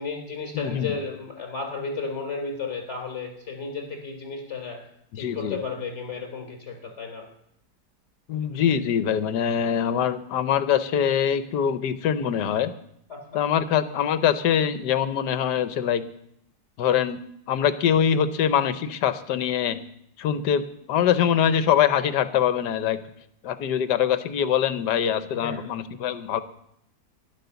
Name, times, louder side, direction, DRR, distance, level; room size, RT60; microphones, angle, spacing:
voice 1, 0.0-4.8 5.1-7.2 13.1-13.5 25.3-25.7, left 4 dB, 40° left, 1 dB, 3.9 m, -33 dB
voice 2, 0.5-0.9 5.1-5.6 8.3-12.7 13.3-16.1 16.8-17.2 17.5-19.8 20.2-23.0 23.4-26.4, left 9 dB, 75° left, 12 dB, 1.3 m, -23 dB
12.0 x 11.0 x 6.9 m, 0.74 s
omnidirectional pair, 1.8 m